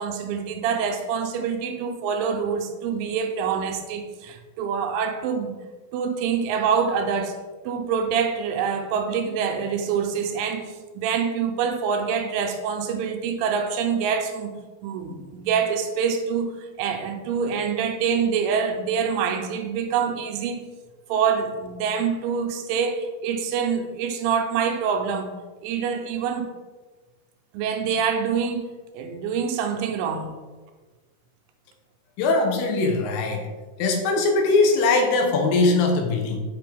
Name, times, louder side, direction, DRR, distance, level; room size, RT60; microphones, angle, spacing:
voice 1, 0.0-5.6 5.9-20.6 21.1-25.3 25.6-26.5 27.5-30.4, right 6 dB, 80° right, 3.0 m, -26 dB
voice 2, 32.2-33.5 33.8-36.4, left 3 dB, 85° left, 3.5 m, -21 dB
7.5 x 5.8 x 3.4 m
omnidirectional pair, 5.7 m